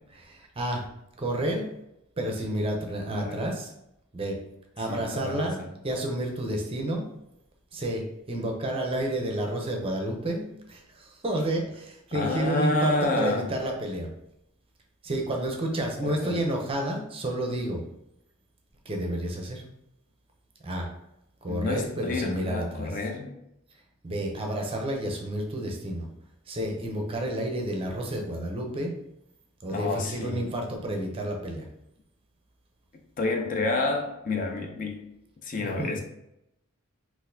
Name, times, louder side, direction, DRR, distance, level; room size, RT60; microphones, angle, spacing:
voice 1, 0.1-0.8 1.2-1.7 2.2-3.7 4.1-4.4 4.8-5.6 5.8-7.0 7.7-14.1 15.0-17.8 18.9-19.6 20.6-20.9 21.4-22.9 24.0-26.1 26.5-28.9 29.6-31.7 35.6-35.9, right 1 dB, 25° right, 1 dB, 0.5 m, -30 dB
voice 2, 4.9-5.7 12.1-13.5 16.0-16.4 21.5-23.3 29.7-30.5 33.2-35.1 35.4-36.0, left 2 dB, 40° left, 3 dB, 0.4 m, -29 dB
3.9 x 2.5 x 2.6 m, 0.84 s
head